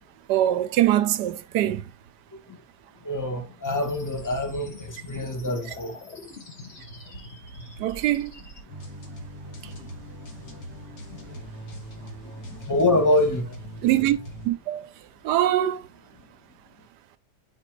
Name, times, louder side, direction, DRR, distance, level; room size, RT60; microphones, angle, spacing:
voice 1, 0.3-1.9 7.8-8.4 9.6-9.7 13.8-14.2 14.4-14.9 15.2-15.9, right 13 dB, 85° right, 1.2 m, -23 dB
voice 2, 3.0-5.9 6.6-6.7 11.3-11.4 12.4-13.5, left 1 dB, 15° left, 0.8 m, -25 dB
sound 1, 3.6-8.6, left 1 dB, 40° left, 1.4 m, -43 dB
sound 2, 8.7-14.5, equal, 60° left, 1.6 m, -40 dB
5.1 x 4.5 x 4.5 m
omnidirectional pair, 1.8 m